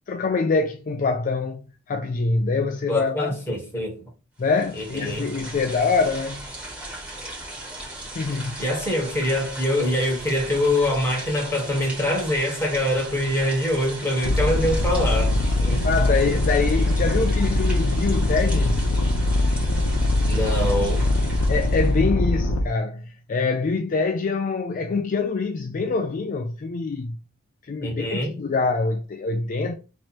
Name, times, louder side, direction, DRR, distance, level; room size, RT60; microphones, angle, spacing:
voice 1, 0.1-3.3 4.4-6.5 8.1-8.6 15.8-18.8 21.5-27.2 27.6-29.7, left 4 dB, 40° left, 0.4 m, -25 dB
voice 2, 2.9-4.0 4.7-5.3 8.6-15.3 15.6-15.8 20.3-21.0 27.8-28.3, left 1 dB, 10° left, 1.6 m, -24 dB
sound 1, 4.4-22.0, right 1 dB, 5° right, 1.6 m, -37 dB
sound 2, 14.2-22.6, left 1 dB, 80° left, 0.8 m, -22 dB
3.1 x 3.0 x 4.2 m
head